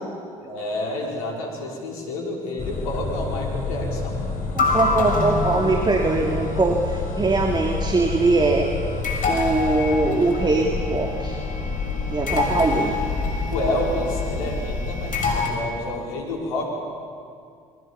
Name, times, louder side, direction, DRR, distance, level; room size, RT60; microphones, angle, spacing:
voice 1, 0.4-4.2 13.5-16.7, left 1 dB, 80° left, -1 dB, 5.1 m, -29 dB
sound 1, 2.6-15.5, left 3 dB, 50° left, 6.3 m, -26 dB
voice 2, 4.5-8.7 9.2-11.4 12.1-13.0, right 3 dB, 25° right, 2 dB, 2.9 m, -22 dB
28.5 x 22.5 x 7.2 m, 2.3 s
hypercardioid pair, 60°, 18 cm